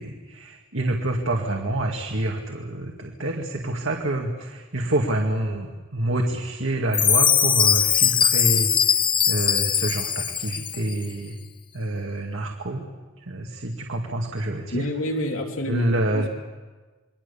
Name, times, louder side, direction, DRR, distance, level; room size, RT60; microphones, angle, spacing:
voice 1, 0.0-11.3 11.7-12.8 13.2-14.9 15.6-16.3, right 1 dB, 75° right, 1 dB, 2.2 m, -27 dB
Chime, 6.9-10.9, left 8 dB, 25° left, 0.7 m, -20 dB
voice 2, 14.7-16.3, left 1 dB, 85° left, 1 dB, 3.2 m, -28 dB
28.5 x 22.0 x 7.1 m, 1.3 s
head